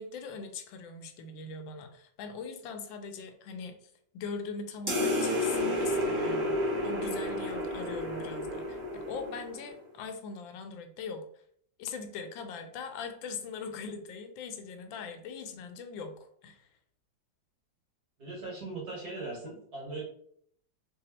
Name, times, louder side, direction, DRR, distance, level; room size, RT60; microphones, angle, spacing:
voice 1, 0.0-3.7 4.1-11.3 11.8-16.2 16.4-16.7, left 5 dB, 85° left, 7 dB, 1.3 m, -41 dB
sound 1, 4.9-9.7, left 1 dB, 25° right, 1.2 m, -31 dB
voice 2, 18.2-20.1, right 3 dB, 55° right, -4 dB, 2.1 m, -39 dB
3.5 x 3.2 x 3.0 m, 0.64 s
omnidirectional pair, 2.0 m